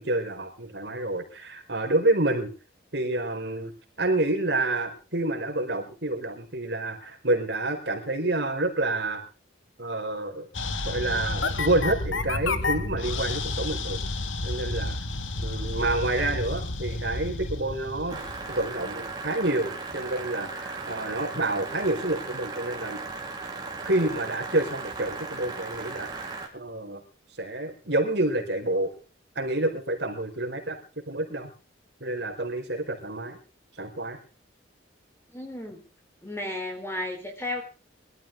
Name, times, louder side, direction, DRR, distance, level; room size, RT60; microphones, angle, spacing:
voice 1, 0.0-2.5 2.9-3.7 4.0-9.2 9.8-10.5 10.9-14.0 14.4-15.0 15.4-18.2 18.5-23.0 23.8-27.0 27.4-28.9 29.4-30.8 31.1-31.5 32.0-33.4 33.8-34.2, right 2 dB, 60° right, 3 dB, 4.4 m, -28 dB
sound 1, 10.5-19.1, left 2 dB, 85° left, 1.8 m, -31 dB
sound 2, 18.1-26.5, right 3 dB, 20° right, 3.5 m, -37 dB
voice 2, 35.3-35.8 36.2-37.6, left 1 dB, 10° left, 4 dB, 3.8 m, -33 dB
23.0 x 13.0 x 3.6 m, 0.35 s
head